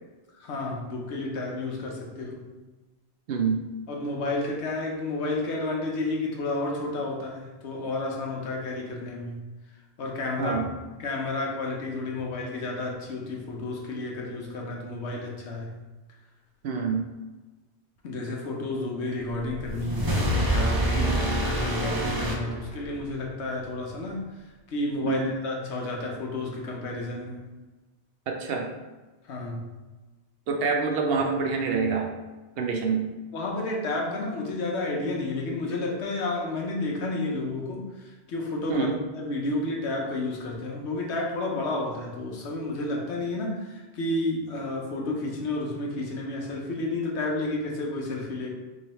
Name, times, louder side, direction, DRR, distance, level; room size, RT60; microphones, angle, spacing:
voice 1, 0.3-2.5 3.9-9.3 10.0-10.6 11.0-15.7 18.0-24.3 24.7-27.4 29.2-29.7 33.3-48.5, left 2 dB, 90° left, 0 dB, 1.1 m, -31 dB
voice 2, 3.3-3.6 10.4-10.7 16.6-17.1 21.0-21.2 25.0-25.3 28.3-28.7 30.5-32.1 32.6-33.1 38.7-39.0, right 5 dB, 65° right, 2 dB, 0.7 m, -26 dB
sound 1, 19.5-23.1, right 1 dB, 40° right, 0.3 m, -26 dB
3.2 x 2.7 x 4.1 m, 1.2 s
omnidirectional pair, 1.1 m